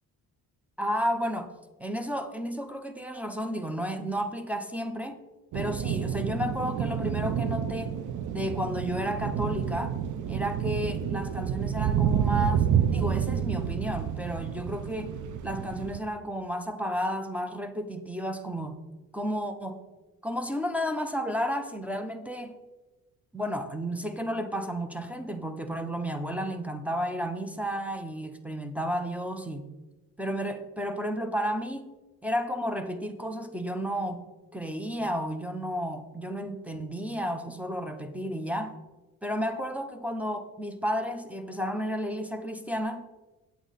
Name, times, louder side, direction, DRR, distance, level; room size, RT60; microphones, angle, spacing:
voice 1, 0.8-1.5 1.8-5.2 5.5-7.9 8.3-9.9 10.3-15.1 15.4-18.8 19.1-19.8 20.2-22.6 23.3-29.7 30.2-31.9 32.2-34.2 34.5-38.7 39.2-43.0, equal, 5° right, 4 dB, 0.6 m, -32 dB
sound 1, 5.5-16.0, right 8 dB, 55° right, 0.6 m, -29 dB
8.1 x 8.1 x 4.0 m, 1.1 s
cardioid pair, 120°, 36 cm